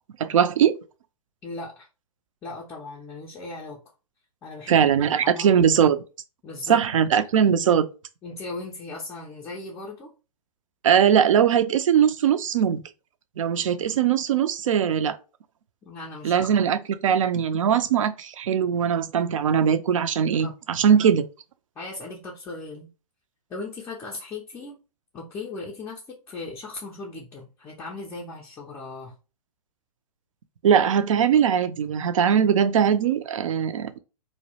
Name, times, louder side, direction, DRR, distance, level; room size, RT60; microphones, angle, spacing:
voice 1, 0.2-0.7 4.7-6.0 6.7-7.9 10.8-12.8 13.4-15.2 16.2-21.2 30.6-34.0, right 8 dB, 60° right, 0.4 m, -20 dB
voice 2, 1.4-1.9 2.4-3.8 4.4-4.8 5.2-5.6 6.4-6.8 8.2-10.1 15.8-16.6 20.4-20.5 21.8-22.9 23.5-24.8 25.1-29.2, left 3 dB, 15° left, 0.4 m, -37 dB
2.3 x 2.0 x 2.8 m
figure-of-eight pair, 115°, 19 cm